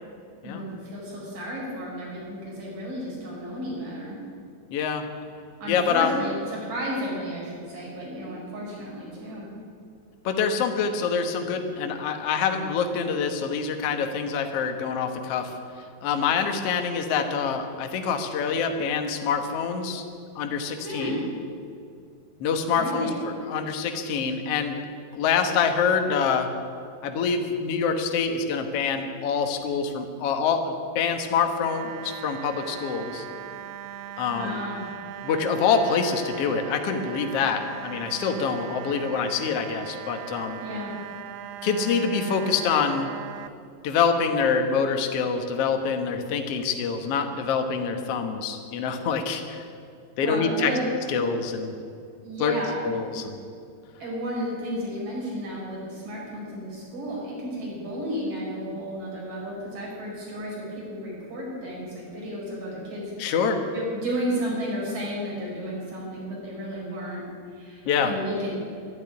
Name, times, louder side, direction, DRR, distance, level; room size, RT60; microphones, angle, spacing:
voice 1, 0.4-4.2 5.6-9.5 20.8-21.2 22.7-23.2 34.3-34.9 40.6-40.9 50.2-50.8 52.2-53.0 54.0-63.1 63.7-67.2 67.5-68.5, equal, 55° right, -5 dB, 6.7 m, -32 dB
voice 2, 4.7-5.1 5.7-6.1 10.2-15.5 16.0-20.0 20.3-21.2 22.4-24.8 25.1-26.5 27.0-33.2 34.2-34.6 35.2-40.6 41.6-43.1 43.8-49.6 50.2-50.7 51.1-51.7 52.4-52.5 52.8-53.3 63.2-63.6 67.8-68.1, left 6 dB, 65° left, 5 dB, 1.5 m, -26 dB
sound 1, 31.6-43.5, right 11 dB, 80° right, 2.0 m, -39 dB
12.0 x 12.0 x 9.6 m, 2.4 s
omnidirectional pair, 4.5 m